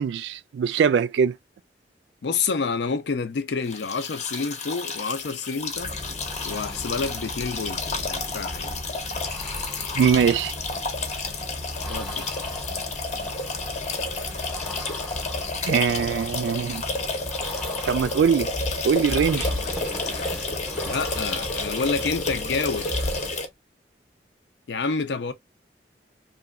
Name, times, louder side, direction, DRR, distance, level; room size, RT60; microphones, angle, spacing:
voice 1, 0.0-1.3 10.0-10.5 15.7-16.8 17.9-18.5 18.8-19.5, right 7 dB, 85° right, 0.3 m, -22 dB
voice 2, 2.2-5.9 6.4-8.8 11.9-12.3 19.3-19.5 20.8-22.9 24.7-25.3, left 4 dB, 80° left, 0.5 m, -28 dB
sound 1, 3.6-23.5, left 3 dB, 40° left, 0.7 m, -31 dB
sound 2, 5.7-23.5, left 1 dB, 5° left, 0.7 m, -36 dB
2.9 x 2.2 x 2.3 m
head